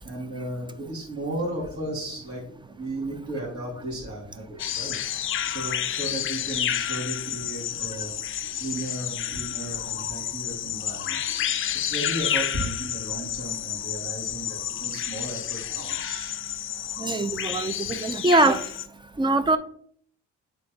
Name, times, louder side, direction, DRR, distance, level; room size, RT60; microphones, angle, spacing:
voice 1, 0.0-11.2 11.8-16.4, right 1 dB, 50° right, -6 dB, 2.5 m, -35 dB
sound 1, 4.6-18.9, left 10 dB, 45° left, 0.4 m, -30 dB
voice 2, 17.0-18.6 19.2-19.6, right 2 dB, 15° right, 12 dB, 0.5 m, -22 dB
8.5 x 3.9 x 2.8 m, 0.63 s
cardioid pair, 90°, 30 cm